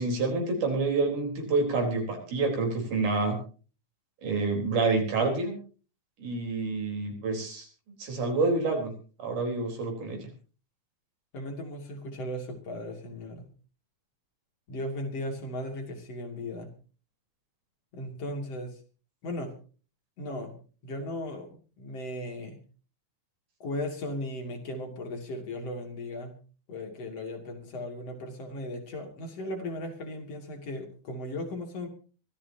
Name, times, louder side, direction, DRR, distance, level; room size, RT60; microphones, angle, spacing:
voice 1, 0.0-3.4 4.2-5.6 6.2-7.7 8.0-8.9 9.2-10.3, right 3 dB, 85° right, 3 dB, 5.6 m, -28 dB
voice 2, 11.3-13.5 14.7-16.7 17.9-18.8 19.2-19.5 20.2-20.5 20.8-21.5 21.8-22.6 23.6-26.4 26.7-31.9, left 1 dB, 55° left, 2 dB, 3.6 m, -36 dB
24.5 x 14.0 x 2.9 m, 0.37 s
omnidirectional pair, 3.5 m